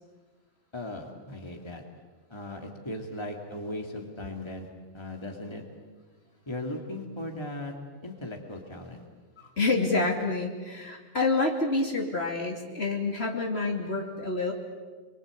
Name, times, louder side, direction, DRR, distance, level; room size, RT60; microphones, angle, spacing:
voice 1, 0.7-1.8 2.3-4.7 4.9-5.6 6.5-7.7 8.0-9.0 9.4-9.5, left 1 dB, 20° left, 2 dB, 2.5 m, -38 dB
voice 2, 9.6-14.5, left 3 dB, 45° left, 1 dB, 3.0 m, -28 dB
28.0 x 23.0 x 8.4 m, 1.4 s
omnidirectional pair, 1.5 m